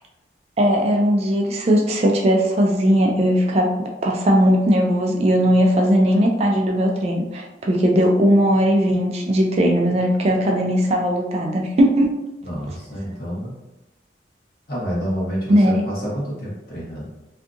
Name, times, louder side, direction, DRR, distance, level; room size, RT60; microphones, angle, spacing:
voice 1, 0.6-3.7 4.0-12.2 15.5-15.9, equal, 35° right, 0 dB, 0.3 m, -18 dB
voice 2, 12.4-13.5 14.7-17.1, equal, 55° left, -6 dB, 1.0 m, -28 dB
2.6 x 2.3 x 2.5 m, 0.99 s
head